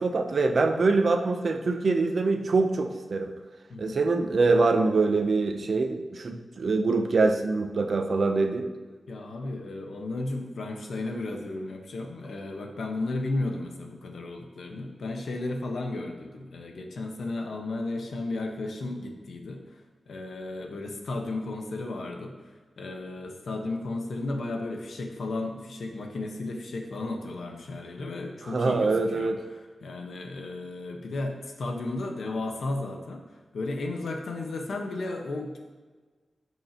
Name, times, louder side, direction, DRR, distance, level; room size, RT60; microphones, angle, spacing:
voice 1, 0.0-3.3 3.8-8.7 28.4-29.4, right 3 dB, 55° right, 6 dB, 0.8 m, -24 dB
voice 2, 9.1-19.6 20.1-22.3 22.8-29.3 29.8-33.2 33.5-35.6, left 2 dB, 85° left, 2 dB, 1.3 m, -34 dB
16.0 x 6.3 x 3.0 m, 1.4 s
wide cardioid pair, 155°, 0 cm